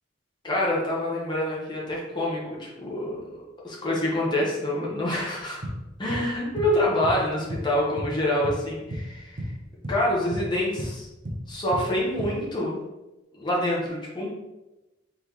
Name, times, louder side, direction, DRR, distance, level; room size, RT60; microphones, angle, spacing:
voice 1, 0.4-5.7 6.0-9.4 9.9-11.1 11.5-12.8 13.3-14.3, left 1 dB, 25° left, -4 dB, 1.1 m, -26 dB
sound 1, 5.6-8.6 8.9-9.1 9.4-12.4, equal, 45° right, 0.7 m, -33 dB
3.9 x 3.6 x 3.2 m, 1.0 s
head